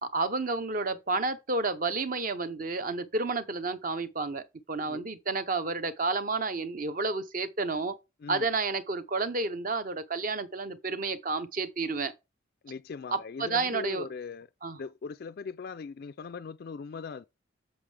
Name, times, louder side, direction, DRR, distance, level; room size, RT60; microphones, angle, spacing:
voice 1, 0.0-8.0 8.3-12.1 13.1-14.1 14.6-14.8, right 3 dB, 45° right, 0.7 m, -31 dB
voice 2, 12.6-14.5 14.8-17.3, left 5 dB, 50° left, 0.3 m, -40 dB
8.6 x 6.3 x 3.3 m
head